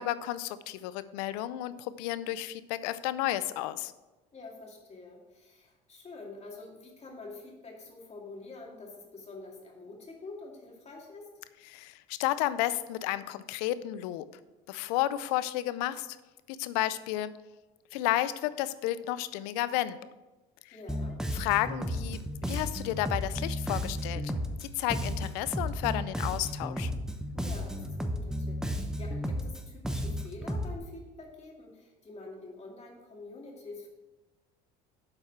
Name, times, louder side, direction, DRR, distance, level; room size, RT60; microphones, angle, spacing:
voice 1, 0.0-3.9 11.7-14.2 14.7-16.2 16.5-17.3 17.9-20.0 20.7-20.8 21.3-24.3 24.6-26.9, left 14 dB, 85° left, 15 dB, 0.5 m, -32 dB
voice 2, 4.3-11.3 20.7-21.2 27.3-33.9, left 3 dB, 35° left, -1 dB, 2.4 m, -47 dB
Bass guitar, 20.9-30.8, equal, 5° right, 0.9 m, -33 dB
7.5 x 4.8 x 5.8 m, 1.1 s
supercardioid pair, 80°, 20 cm